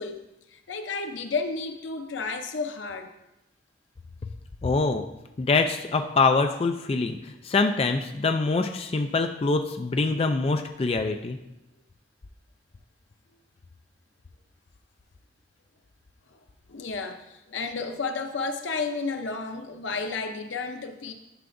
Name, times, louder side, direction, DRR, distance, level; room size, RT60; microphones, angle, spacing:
voice 1, 0.0-3.1 16.3-16.4 16.7-21.1, left 4 dB, 90° left, 6 dB, 0.7 m, -32 dB
voice 2, 4.6-5.0 5.4-11.4, left 3 dB, 30° left, 6 dB, 0.3 m, -24 dB
11.0 x 5.8 x 2.6 m, 0.90 s
head